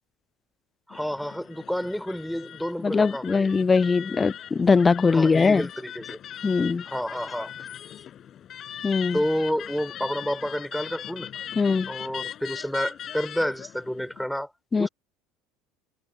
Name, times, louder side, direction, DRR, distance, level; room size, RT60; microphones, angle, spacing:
sound 1, 0.9-14.3, left 10 dB, 45° left, 7.4 m, -40 dB
voice 1, 0.9-3.5 5.1-6.2 6.8-7.5 9.1-11.3 11.9-14.5 14.8-14.9, equal, ahead, 6.2 m, -29 dB
voice 2, 2.8-5.7 6.4-6.8 8.8-9.2 11.6-11.9 14.7-14.9, left 4 dB, 20° left, 0.4 m, -21 dB
supercardioid pair, 100°, 0 cm